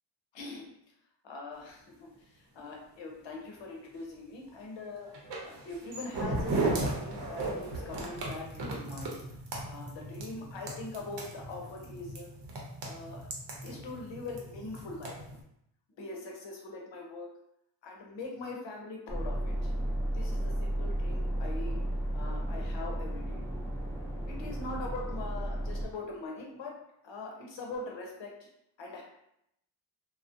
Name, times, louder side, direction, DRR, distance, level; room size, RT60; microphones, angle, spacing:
voice 1, 0.3-0.7 1.2-2.1 2.5-5.1 5.4-9.1 9.6-12.3 12.8-13.3 13.6-15.2 16.0-17.3 17.8-19.7 20.1-21.8 22.1-23.4 24.3-26.7 27.0-28.3 28.8-29.0, left 3 dB, 85° left, 0 dB, 0.7 m, -42 dB
sound 1, 5.1-15.4, right 2 dB, 70° right, 0.7 m, -36 dB
sound 2, 19.1-25.9, right 1 dB, 5° left, 0.5 m, -33 dB
2.4 x 2.0 x 2.5 m, 0.77 s
wide cardioid pair, 140°, 44 cm